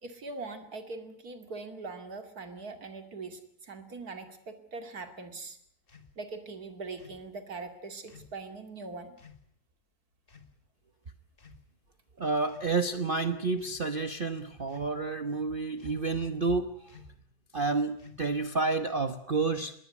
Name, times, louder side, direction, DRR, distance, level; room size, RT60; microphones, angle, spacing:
voice 1, 0.0-5.6 6.2-9.2, right 3 dB, 60° right, 8 dB, 2.9 m, -42 dB
sound 1, 5.9-6.1 7.0-7.3 8.1-8.4 9.2-9.4 10.3-10.6 11.3-11.9 12.4-12.8 13.5-13.8 14.7-15.1 15.8-16.2 16.9-17.2 18.0-18.5, left 6 dB, 30° left, 1.8 m, -54 dB
voice 2, 12.2-17.0 17.5-19.7, right 3 dB, 35° right, 9 dB, 1.0 m, -30 dB
21.0 x 18.0 x 9.4 m, 0.66 s
omnidirectional pair, 1.9 m